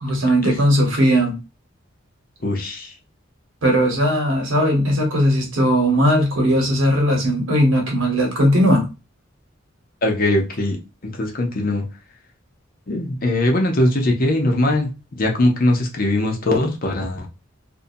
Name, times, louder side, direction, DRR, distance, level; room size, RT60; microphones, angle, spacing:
voice 1, 0.0-1.3 3.6-8.8, equal, 80° right, 1.0 m, -18 dB
voice 2, 2.4-2.9 10.0-11.9 12.9-17.3, left 1 dB, 45° left, 0.6 m, -21 dB
2.6 x 2.1 x 2.6 m
head